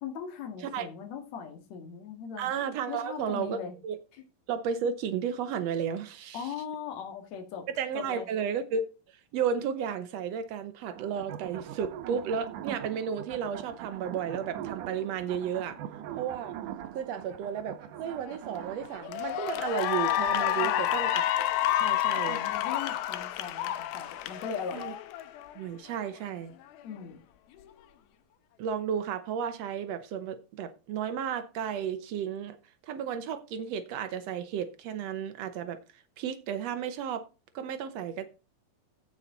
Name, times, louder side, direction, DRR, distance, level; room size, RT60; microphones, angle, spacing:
voice 1, 0.0-2.5 2.9-3.7 6.3-7.7 7.9-8.3 20.5-20.9 22.3-24.9 26.8-27.2, left 7 dB, 50° left, 3.1 m, -39 dB
voice 2, 2.4-4.0 4.5-6.5 7.8-15.8 16.2-16.5 16.9-21.5 21.8-22.4 24.7-24.9 25.5-26.5 28.6-32.6 32.8-37.2 37.5-38.3, right 7 dB, 90° right, 1.4 m, -33 dB
sound 1, 10.9-19.8, right 10 dB, 70° right, 2.2 m, -42 dB
Cheering / Applause, 18.3-18.6 19.0-25.5, left 12 dB, 90° left, 2.7 m, -29 dB
15.5 x 5.7 x 3.9 m
omnidirectional pair, 4.2 m